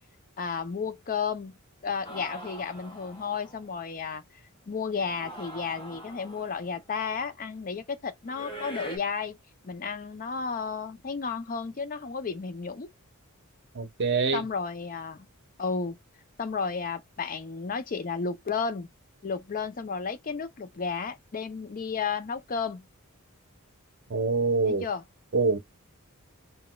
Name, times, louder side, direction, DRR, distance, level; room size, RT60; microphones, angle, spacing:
voice 1, 0.4-1.6 1.8-4.2 4.7-9.4 9.6-12.9 14.3-15.3 15.6-16.0 16.4-18.9 19.2-22.9 24.6-25.0, left 5 dB, 40° left, 0.5 m, -32 dB
sound 1, 2.0-3.7 5.0-6.8 8.3-9.0, right 1 dB, 20° left, 0.9 m, -42 dB
voice 2, 13.7-14.4 24.1-24.8 25.3-25.6, right 4 dB, 50° right, 0.7 m, -25 dB
4.0 x 2.1 x 2.3 m
head